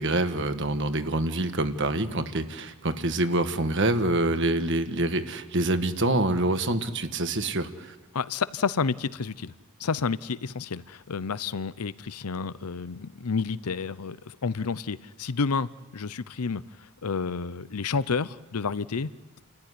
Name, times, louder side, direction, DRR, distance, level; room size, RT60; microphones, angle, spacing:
voice 1, 0.0-7.9, right 2 dB, 55° right, 1.5 m, -26 dB
voice 2, 8.1-9.5 9.8-16.6 17.0-19.1, left 5 dB, 85° left, 0.7 m, -30 dB
30.0 x 14.5 x 9.9 m
head